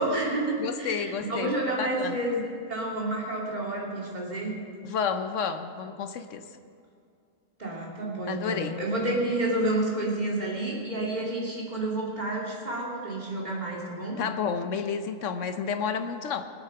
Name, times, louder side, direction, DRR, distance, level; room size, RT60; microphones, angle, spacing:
voice 1, 0.0-4.5 7.6-14.2, right 1 dB, 25° right, -3 dB, 2.7 m, -30 dB
voice 2, 0.6-2.2 4.8-6.4 8.3-8.8 14.2-16.5, left 6 dB, 60° left, 9 dB, 0.9 m, -31 dB
20.0 x 8.2 x 5.7 m, 2.3 s
omnidirectional pair, 1.7 m